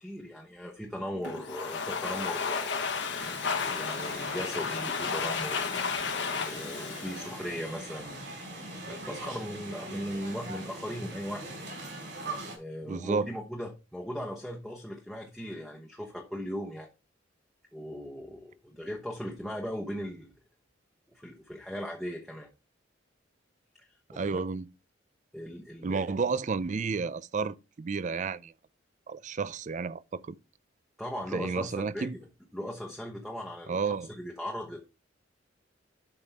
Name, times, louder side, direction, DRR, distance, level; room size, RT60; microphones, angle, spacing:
voice 1, 0.0-2.9 3.7-5.7 6.4-8.2 8.9-11.5 12.6-16.9 17.7-20.3 21.1-22.5 23.8-24.4 25.3-26.1 31.0-32.2 32.5-33.8 34.1-34.8, equal, ahead, 1.0 m, -38 dB
Domestic sounds home sounds, 1.2-8.1, left 5 dB, 65° left, 1.3 m, -33 dB
sound 1, 3.2-12.6, right 2 dB, 65° right, 4.8 m, -42 dB
voice 2, 12.9-13.3 24.1-24.7 25.8-28.5 29.1-30.4 31.3-32.2 33.7-34.1, right 4 dB, 40° right, 0.4 m, -31 dB
11.5 x 5.2 x 3.5 m
head